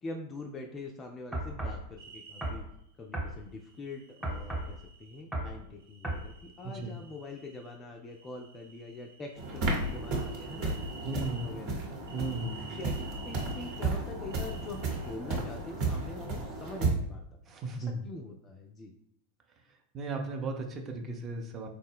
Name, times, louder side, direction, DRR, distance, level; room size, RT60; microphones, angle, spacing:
voice 1, 0.0-2.7 3.0-10.8 11.1-11.8 12.7-17.2 17.8-18.9, left 2 dB, 20° left, 2 dB, 0.3 m, -44 dB
sound 1, 1.3-1.8 2.4-2.6 3.1-3.3 4.2-4.7 5.3-5.6 6.0-6.3, right 1 dB, 5° right, 1.0 m, -34 dB
sound 2, 2.0-2.5 3.6-5.2 5.8-7.8 8.1-11.5 12.0-13.8 14.3-15.1, right 5 dB, 70° right, 0.9 m, -52 dB
sound 3, 9.4-16.9, right 3 dB, 45° right, 0.9 m, -33 dB
voice 2, 11.0-11.4 12.1-12.7 17.5-18.0 19.9-21.7, right 3 dB, 25° right, 2 dB, 0.6 m, -35 dB
4.2 x 2.1 x 3.4 m, 0.73 s
figure-of-eight pair, 90°, 0 cm